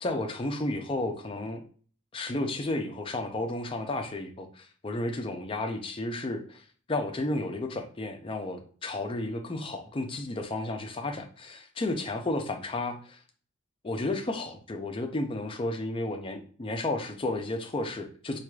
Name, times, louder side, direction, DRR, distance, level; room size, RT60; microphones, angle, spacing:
voice 1, 0.0-1.6 2.1-13.2 13.8-18.4, left 2 dB, 25° left, 5 dB, 0.5 m, -32 dB
4.5 x 2.4 x 2.3 m, 0.42 s
head